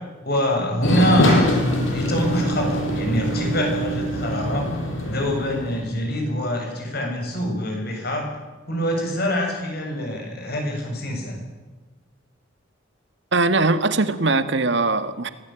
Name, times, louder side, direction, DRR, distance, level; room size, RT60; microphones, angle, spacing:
voice 1, 0.2-4.7 5.1-8.3 8.7-11.4, equal, 55° left, 2 dB, 7.3 m, -25 dB
sound 1, 0.8-5.8, equal, 80° left, 6.1 m, -23 dB
voice 2, 13.3-15.3, right 3 dB, 65° right, 11 dB, 1.7 m, -20 dB
24.0 x 17.5 x 9.0 m, 1.2 s
head